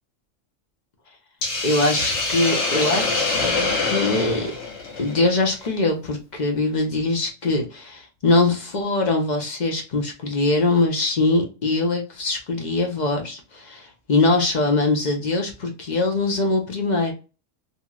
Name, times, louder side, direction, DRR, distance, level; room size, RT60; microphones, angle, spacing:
Hiss, 1.4-5.7, left 3 dB, 70° left, 1.2 m, -25 dB
voice 1, 1.6-4.5 5.0-17.1, left 2 dB, 45° left, 2 dB, 0.8 m, -22 dB
2.9 x 2.7 x 2.3 m, 0.32 s
omnidirectional pair, 1.3 m